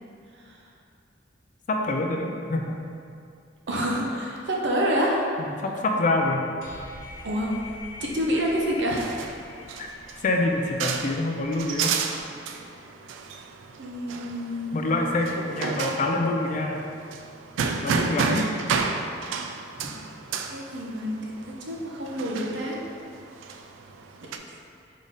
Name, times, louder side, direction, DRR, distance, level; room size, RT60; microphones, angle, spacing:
voice 1, 1.7-2.8 5.4-6.5 10.2-11.9 14.7-16.8 17.8-18.5, left 2 dB, 40° left, 2 dB, 0.4 m, -26 dB
voice 2, 3.7-5.2 7.2-7.5 8.0-9.2 13.8-15.1 19.8-19.9 20.5-22.8 24.5-24.6, equal, 65° right, -2 dB, 0.7 m, -28 dB
sound 1, 6.6-12.2, left 2 dB, 70° left, 1.0 m, -45 dB
sound 2, 8.4-24.4, right 5 dB, 90° right, 0.3 m, -32 dB
3.7 x 3.5 x 4.0 m, 2.5 s
head